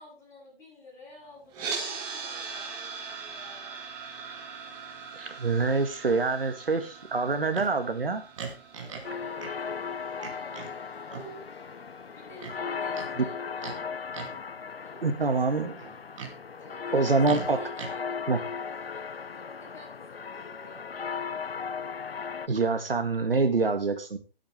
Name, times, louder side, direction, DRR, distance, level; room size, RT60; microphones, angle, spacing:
voice 1, 0.0-3.8 8.7-9.9 10.2-11.5 12.1-13.9 14.6-15.1 16.6-21.3, left 1 dB, 10° left, -5 dB, 7.3 m, -51 dB
sound 1, 1.5-11.6, right 5 dB, 15° right, 2.1 m, -41 dB
voice 2, 5.2-8.2 13.2-13.3 15.0-15.8 16.9-17.7 18.3-18.4 22.5-24.2, right 4 dB, 65° right, 7 dB, 1.9 m, -26 dB
Livestock farm animals working animals, 7.5-7.7 8.4-9.1 9.4-9.5 10.2-10.7 11.1-11.3 12.4-13.1 13.6-13.8 14.1-14.4 15.8-16.4 17.2-17.9, right 6 dB, 30° right, 2.6 m, -39 dB
sound 2, 9.0-22.5, left 6 dB, 75° left, 0.8 m, -37 dB
19.0 x 8.7 x 3.4 m, 0.31 s
figure-of-eight pair, 145°, 30 cm